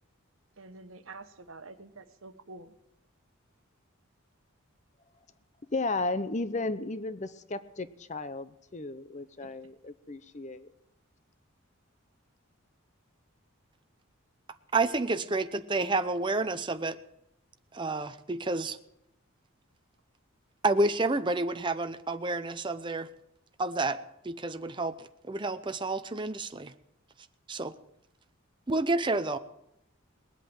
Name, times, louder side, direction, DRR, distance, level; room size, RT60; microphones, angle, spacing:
voice 1, 0.6-2.7 9.4-9.5 15.3-15.4, right 3 dB, 75° right, 10 dB, 1.2 m, -47 dB
voice 2, 5.6-10.7, left 2 dB, 35° left, 13 dB, 0.7 m, -34 dB
voice 3, 14.7-17.0 17.7-18.8 20.6-23.1 23.6-26.7 27.5-27.7 28.7-29.4, right 2 dB, 20° right, 9 dB, 0.7 m, -29 dB
19.5 x 8.4 x 8.9 m, 0.81 s
head